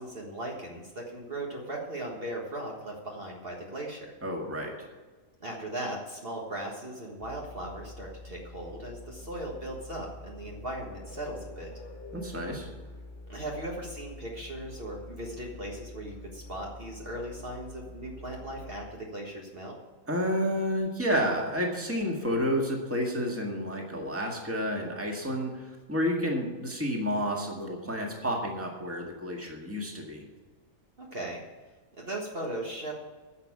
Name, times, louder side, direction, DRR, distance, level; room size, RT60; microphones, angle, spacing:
voice 1, 0.0-4.1 5.4-11.7 13.3-19.8 31.0-31.4 32.0-32.9, right 1 dB, 45° right, -1 dB, 1.7 m, -38 dB
voice 2, 4.2-4.7 12.1-12.7 20.1-30.2, equal, 10° right, 0 dB, 1.9 m, -30 dB
sound 1, 7.2-18.9, left 1 dB, 35° left, 1.6 m, -46 dB
10.5 x 6.8 x 8.7 m, 1.3 s
omnidirectional pair, 1.4 m